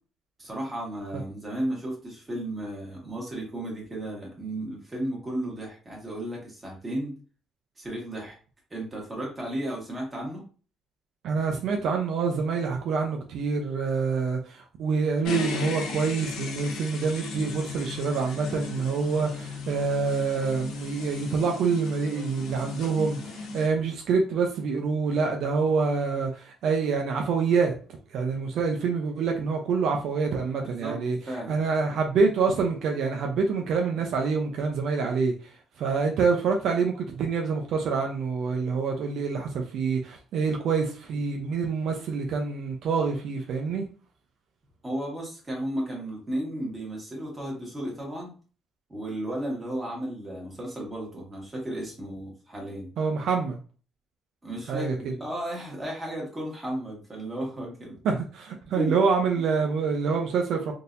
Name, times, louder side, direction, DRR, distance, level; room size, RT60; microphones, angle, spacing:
voice 1, 0.4-7.1 7.8-8.4 8.7-10.4 30.6-31.0 31.3-31.6 44.8-48.3 48.9-52.9 54.4-58.0 58.7-58.9, right 1 dB, 20° right, 1.6 m, -34 dB
voice 2, 11.2-31.2 31.5-43.9 53.0-53.6 54.7-55.1 58.0-60.7, right 5 dB, 65° right, 0.5 m, -26 dB
sound 1, 15.2-23.7, left 4 dB, 85° left, 0.8 m, -36 dB
3.8 x 2.7 x 2.6 m
cardioid pair, 120°, 0 cm